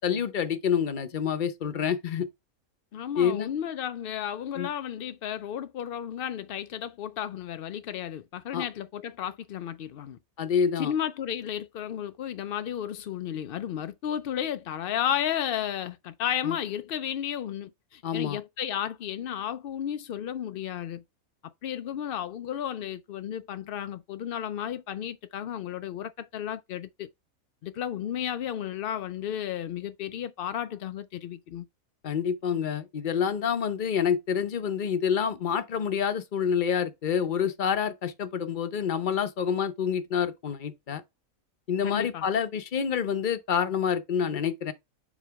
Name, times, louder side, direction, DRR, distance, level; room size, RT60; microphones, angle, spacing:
voice 1, 0.0-2.3 3.2-3.5 4.6-4.7 8.5-8.6 10.4-10.9 16.4-16.6 18.0-18.4 32.0-41.0 41.7-44.7, left 7 dB, 45° left, 0.7 m, -27 dB
voice 2, 2.9-10.2 10.8-21.0 21.6-27.1 27.6-31.6 41.8-42.3, left 10 dB, 80° left, 0.5 m, -33 dB
7.3 x 2.9 x 4.6 m
omnidirectional pair, 1.5 m